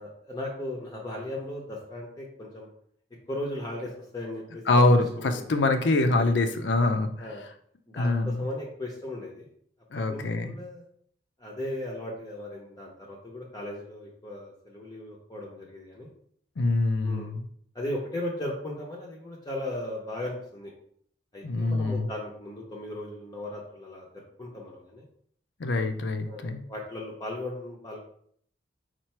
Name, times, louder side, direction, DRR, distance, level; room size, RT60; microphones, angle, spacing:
voice 1, 0.0-2.7 3.3-4.8 5.2-5.4 7.2-7.4 7.9-9.5 10.1-10.9 11.4-16.1 17.0-17.3 17.7-20.7 21.3-25.0 26.3-28.0, left 1 dB, 20° left, -2 dB, 0.7 m, -37 dB
voice 2, 4.7-7.1 7.9-8.5 9.9-10.5 16.6-17.5 21.4-22.1 25.6-26.6, left 2 dB, 70° left, 7 dB, 0.5 m, -24 dB
4.5 x 2.5 x 4.3 m, 0.63 s
head